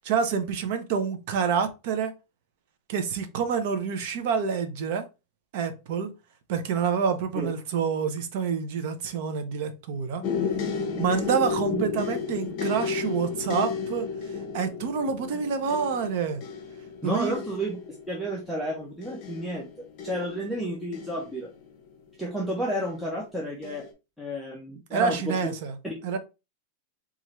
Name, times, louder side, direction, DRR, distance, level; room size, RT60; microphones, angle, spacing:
voice 1, 0.0-2.1 2.9-5.1 5.5-6.1 6.5-10.2 11.0-14.1 14.5-16.4 17.0-17.3 24.9-25.7 26.0-26.2, right 6 dB, 45° right, 0.6 m, -27 dB
sound 1, 10.2-22.1 22.8-23.2 23.6-23.9, left 5 dB, 35° left, 0.7 m, -33 dB
voice 2, 17.0-17.8 18.1-19.7 20.0-21.5 22.2-23.9 24.2-25.5 25.8-25.9, right 1 dB, ahead, 0.5 m, -31 dB
4.2 x 2.4 x 3.0 m
supercardioid pair, 180°, 0 cm